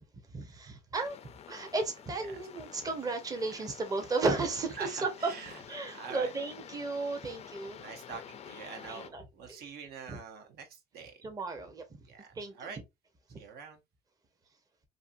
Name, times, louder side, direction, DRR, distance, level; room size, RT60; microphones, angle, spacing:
voice 1, 0.3-1.2 1.5-5.1 5.7-7.8 8.9-9.2 9.5-9.6 10.1-10.2 11.2-11.8 12.3-12.7 13.3-13.4, right 3 dB, 20° right, 0.6 m, -34 dB
sound 1, 1.0-9.1, left 8 dB, 40° left, 0.4 m, -49 dB
voice 2, 2.1-2.5 3.4-3.7 4.7-6.3 7.7-11.2 12.0-12.8 13.4-13.8, right 6 dB, 70° right, 0.7 m, -45 dB
2.6 x 2.5 x 2.4 m
cardioid pair, 110°, 17 cm